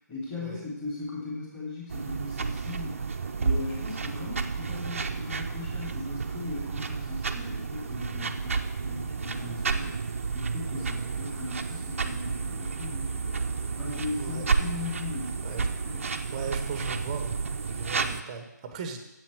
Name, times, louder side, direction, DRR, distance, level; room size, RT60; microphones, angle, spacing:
voice 1, 0.1-10.0 10.3-13.3 13.8-16.2, left 3 dB, 10° left, -6 dB, 2.7 m, -38 dB
sound 1, 1.9-18.2, right 4 dB, 45° right, 0.7 m, -31 dB
voice 2, 16.3-17.4 17.7-19.0, right 6 dB, 20° right, 6 dB, 1.0 m, -38 dB
7.9 x 7.3 x 8.3 m, 0.97 s
figure-of-eight pair, 150°, 10 cm